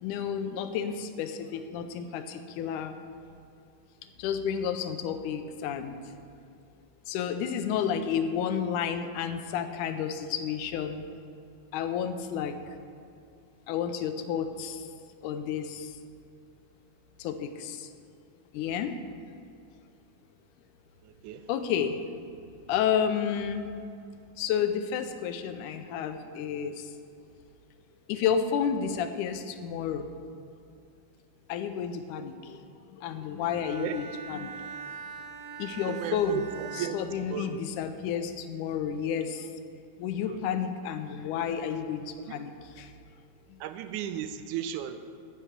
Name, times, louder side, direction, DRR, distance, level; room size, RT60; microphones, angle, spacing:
voice 1, 0.0-2.9 4.2-6.0 7.1-11.0 11.7-12.6 13.7-14.9 15.2-15.9 17.2-17.9 18.5-19.0 21.5-22.0 22.7-23.7 24.4-26.8 28.1-30.1 31.5-34.5 35.6-36.4 36.8-39.5 40.0-42.9, left 8 dB, 90° left, 9 dB, 2.2 m, -31 dB
voice 2, 21.0-21.4 33.8-34.0 35.9-37.6 40.3-40.4 42.3-42.4 43.6-45.0, right 9 dB, 85° right, 9 dB, 2.1 m, -35 dB
Bowed string instrument, 33.4-37.9, right 6 dB, 70° right, 1.6 m, -43 dB
10.0 x 6.1 x 8.0 m, 2.4 s
omnidirectional pair, 3.5 m